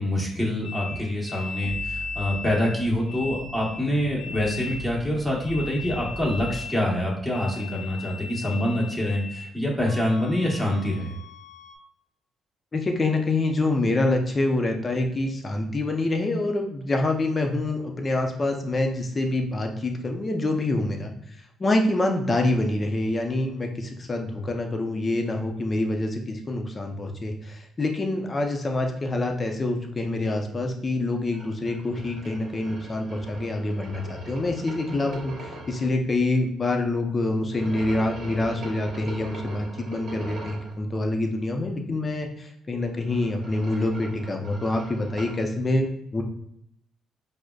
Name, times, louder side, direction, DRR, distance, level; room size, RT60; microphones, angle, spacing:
voice 1, 0.0-11.2, left 1 dB, 5° right, -4 dB, 1.1 m, -26 dB
sound 1, 0.6-9.5 9.9-11.7, left 4 dB, 80° left, 0.8 m, -38 dB
sound 2, 1.6-6.6, right 2 dB, 75° right, 0.3 m, -40 dB
voice 2, 12.7-21.1 21.6-46.2, left 2 dB, 30° left, 3 dB, 0.6 m, -26 dB
sound 3, 31.3-35.9 37.5-40.7 42.8-45.4, right 1 dB, 55° right, 1.1 m, -41 dB
5.0 x 2.1 x 2.3 m, 0.77 s
cardioid pair, 90°, 0 cm